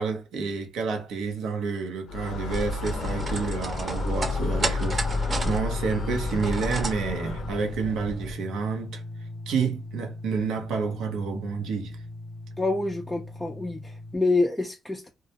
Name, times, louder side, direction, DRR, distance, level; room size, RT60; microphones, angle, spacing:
voice 1, 0.0-9.0 9.5-12.0, right 5 dB, 85° right, 0.7 m, -29 dB
sound 1, 2.1-7.8, left 5 dB, 75° left, 0.4 m, -32 dB
sound 2, 2.5-8.4, right 2 dB, 35° right, 0.7 m, -32 dB
sound 3, 4.8-14.2, left 2 dB, 25° left, 0.7 m, -38 dB
voice 2, 12.6-15.1, left 3 dB, 10° left, 0.4 m, -27 dB
2.3 x 2.0 x 2.8 m
cardioid pair, 90°, 0 cm